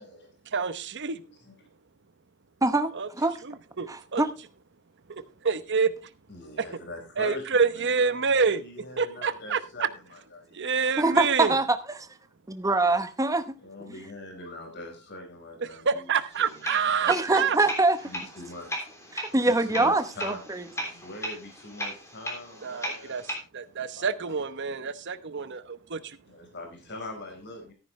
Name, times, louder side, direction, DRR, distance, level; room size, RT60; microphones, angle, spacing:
voice 1, 0.5-1.2 2.9-3.1 3.5-4.2 5.4-5.9 7.2-8.6 9.0-9.9 10.5-11.5 15.8-17.6 22.6-23.2 23.5-26.2, right 5 dB, 50° right, 0.9 m, -27 dB
voice 2, 1.2-1.6 3.2-3.3 6.3-11.2 13.6-16.1 16.4-17.6 18.0-23.2 23.9-24.4 26.3-27.7, left 2 dB, 50° left, 4.5 m, -43 dB
voice 3, 2.6-3.3 3.9-4.3 11.0-12.1 12.5-13.6 17.1-18.0 19.1-20.7, right 2 dB, 15° right, 0.9 m, -24 dB
sound 1, 16.3-23.4, equal, 15° left, 3.3 m, -37 dB
14.0 x 9.8 x 3.2 m
head